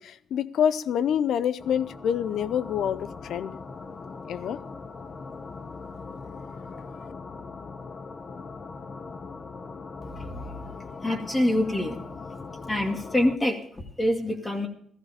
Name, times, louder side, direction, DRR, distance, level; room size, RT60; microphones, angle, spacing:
voice 1, 0.0-3.0 3.3-3.5 4.3-4.6, left 8 dB, 70° left, 0.6 m, -26 dB
sound 1, 1.6-13.4, left 4 dB, 40° left, 1.0 m, -40 dB
voice 2, 11.0-12.1 12.7-14.7, left 1 dB, 15° left, 2.2 m, -26 dB
14.5 x 13.5 x 5.0 m
cardioid pair, 90°, 0 cm